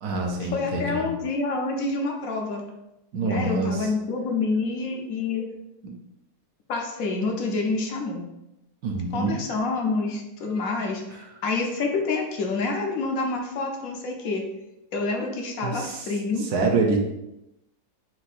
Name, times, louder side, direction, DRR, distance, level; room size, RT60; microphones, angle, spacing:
voice 1, 0.0-1.1 3.1-3.9 5.8-6.0 8.8-9.4 15.6-16.1 16.4-17.0, right 3 dB, 80° right, 2 dB, 1.3 m, -26 dB
voice 2, 0.5-2.6 3.2-5.4 6.7-8.2 9.1-11.0 11.4-14.4 14.9-16.5, left 3 dB, 65° left, 1 dB, 1.1 m, -27 dB
4.5 x 2.6 x 4.1 m, 0.88 s
omnidirectional pair, 1.6 m